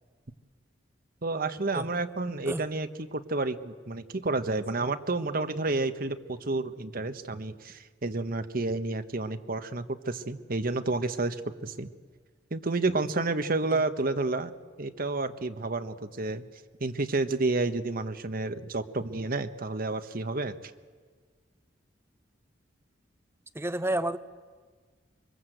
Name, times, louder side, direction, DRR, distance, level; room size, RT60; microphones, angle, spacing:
voice 1, 1.2-11.9 12.5-14.5 14.8-16.4 16.8-20.6, right 2 dB, 50° right, 9 dB, 1.2 m, -30 dB
voice 2, 23.5-24.2, right 1 dB, 15° right, 10 dB, 0.9 m, -30 dB
25.5 x 22.5 x 8.0 m, 1.5 s
head